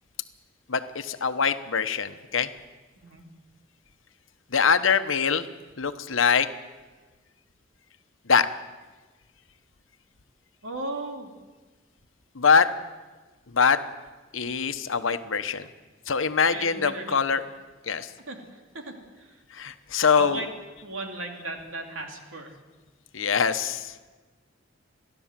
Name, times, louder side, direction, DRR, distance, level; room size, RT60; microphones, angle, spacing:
voice 1, 0.7-2.5 4.5-5.4 5.8-6.5 8.3-8.5 12.3-12.7 13.5-13.8 14.3-15.7 16.1-17.4 17.8-18.1 19.5-20.4 23.1-24.1, left 6 dB, 85° left, 10 dB, 1.0 m, -23 dB
voice 2, 10.6-11.3 16.5-17.2 18.3-19.4 20.2-20.5 20.8-22.6, right 2 dB, 90° right, 2 dB, 3.1 m, -36 dB
30.0 x 11.5 x 7.5 m, 1.3 s
head